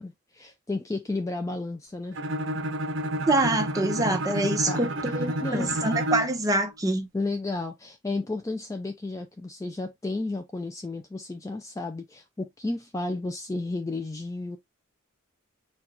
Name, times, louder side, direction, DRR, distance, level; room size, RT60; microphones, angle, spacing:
voice 1, 0.0-2.2 4.7-5.7 7.1-14.6, left 2 dB, 15° left, 0.3 m, -33 dB
Bowed string instrument, 2.1-6.4, right 1 dB, 70° right, 0.8 m, -30 dB
voice 2, 3.3-7.1, right 2 dB, 15° right, 0.8 m, -25 dB
4.3 x 2.3 x 3.8 m
head